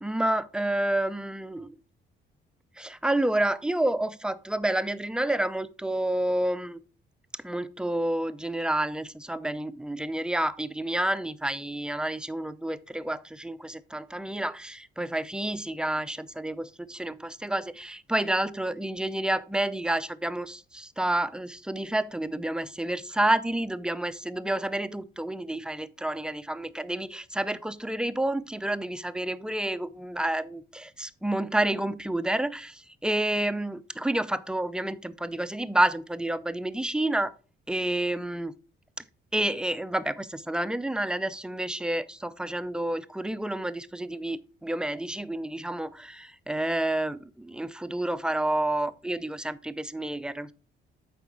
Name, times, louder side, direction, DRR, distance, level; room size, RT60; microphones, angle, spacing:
voice 1, 0.0-1.7 2.8-6.8 7.4-37.3 37.7-38.5 39.3-50.5, right 1 dB, 5° right, 0.5 m, -29 dB
8.1 x 5.0 x 4.7 m
cardioid pair, 90°, 20 cm